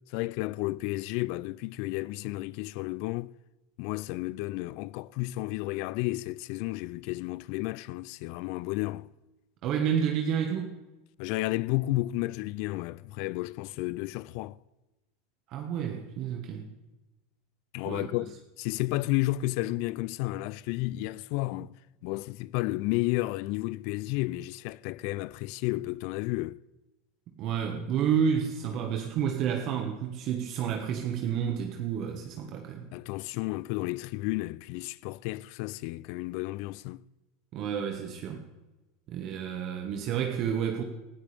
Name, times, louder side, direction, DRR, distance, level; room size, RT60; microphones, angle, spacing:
voice 1, 0.1-3.3 3.8-9.1 11.2-14.6 17.7-21.7 22.0-26.6 32.9-37.0, left 19 dB, 60° left, 0.3 m, -32 dB
voice 2, 9.6-10.7 15.5-16.6 17.8-18.1 27.4-32.9 37.5-38.4 39.1-40.8, right 8 dB, 50° right, 1.5 m, -30 dB
19.0 x 12.0 x 3.5 m
supercardioid pair, 110°, 0 cm